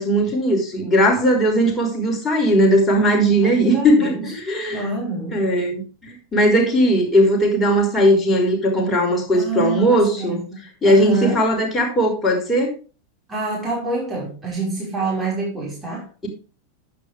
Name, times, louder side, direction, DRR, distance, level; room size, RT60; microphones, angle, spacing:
voice 1, 0.0-4.9 5.3-10.4 10.8-12.8, equal, 15° left, 5.4 m, -18 dB
voice 2, 3.4-4.3 4.7-5.5 9.3-11.4 13.3-16.1, right 3 dB, 15° right, 5.7 m, -27 dB
11.5 x 9.4 x 3.6 m
figure-of-eight pair, 90°, 0 cm